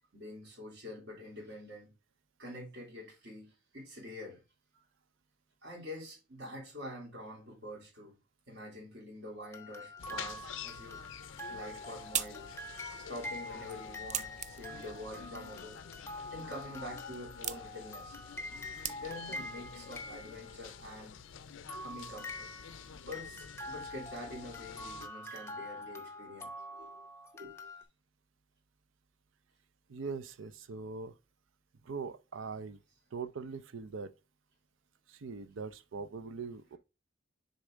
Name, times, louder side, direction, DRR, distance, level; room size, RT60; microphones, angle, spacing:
voice 1, 0.1-1.9 2.4-4.4 5.6-8.1 8.5-11.2 11.5-12.6 13.1-18.2 19.0-21.2 21.8-22.5 23.1-27.0 27.3-27.7, left 1 dB, 60° right, 3.0 m, -46 dB
sound 1, 9.4-20.9 21.7-27.8, left 1 dB, 15° left, 0.6 m, -45 dB
sound 2, 10.0-25.1, left 7 dB, 85° left, 0.5 m, -49 dB
sound 3, 11.4-19.4, right 10 dB, 35° right, 0.3 m, -43 dB
voice 2, 29.9-31.1 31.8-32.8 33.1-34.1 35.1-36.8, right 4 dB, 85° right, 0.6 m, -41 dB
6.6 x 4.1 x 3.6 m
head